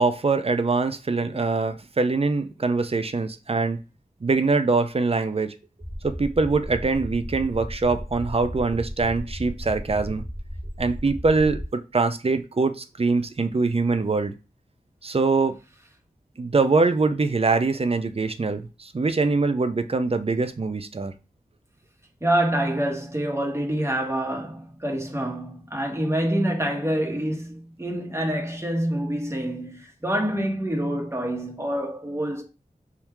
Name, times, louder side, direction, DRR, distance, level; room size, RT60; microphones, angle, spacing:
voice 1, 0.0-3.8 4.2-5.5 6.0-10.2 10.8-14.3 15.0-15.6 16.4-21.1, right 3 dB, 40° right, 0.5 m, -23 dB
sound 1, 5.8-11.6, equal, 5° right, 1.0 m, -35 dB
voice 2, 22.2-32.4, right 1 dB, 20° right, 1.3 m, -26 dB
3.6 x 2.8 x 4.5 m
wide cardioid pair, 50°, 15 cm